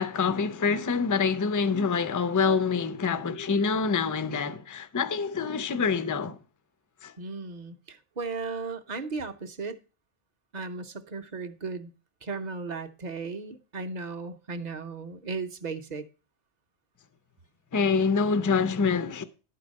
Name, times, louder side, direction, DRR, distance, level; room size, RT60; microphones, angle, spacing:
voice 1, 0.0-6.4 7.0-7.1 17.7-19.2, left 5 dB, 25° left, 0.4 m, -26 dB
voice 2, 7.2-9.8 10.5-11.9 12.2-16.1, right 4 dB, 45° right, 0.7 m, -36 dB
11.5 x 4.7 x 6.3 m
omnidirectional pair, 1.2 m